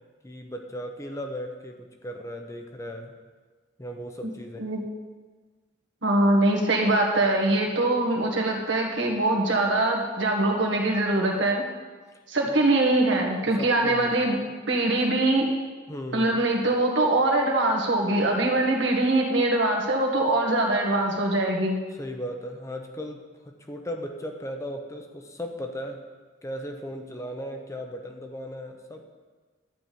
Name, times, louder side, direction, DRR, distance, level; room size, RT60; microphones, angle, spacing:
voice 1, 0.2-3.1 3.8-4.7 12.5-12.6 13.6-14.4 15.9-16.4 21.9-26.0 26.4-29.0, equal, 15° left, 4 dB, 0.8 m, -37 dB
voice 2, 6.0-11.6 12.3-14.4 14.7-15.5 16.1-21.8, right 2 dB, 80° right, 0 dB, 1.7 m, -23 dB
12.0 x 4.2 x 8.3 m, 1.4 s
head